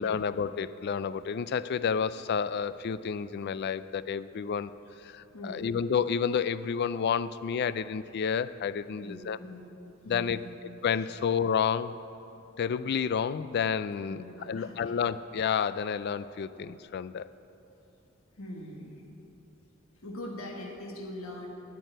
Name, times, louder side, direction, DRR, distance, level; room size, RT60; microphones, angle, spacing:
voice 1, 0.0-4.7 5.0-9.4 10.1-10.4 10.8-11.9 12.6-17.3, left 7 dB, 50° left, 15 dB, 0.3 m, -30 dB
voice 2, 5.3-5.7 9.0-9.7 10.0-10.5 14.0-14.7 18.3-19.0 20.0-21.5, left 1 dB, 75° left, 0 dB, 1.4 m, -42 dB
8.8 x 8.4 x 9.0 m, 3.0 s
head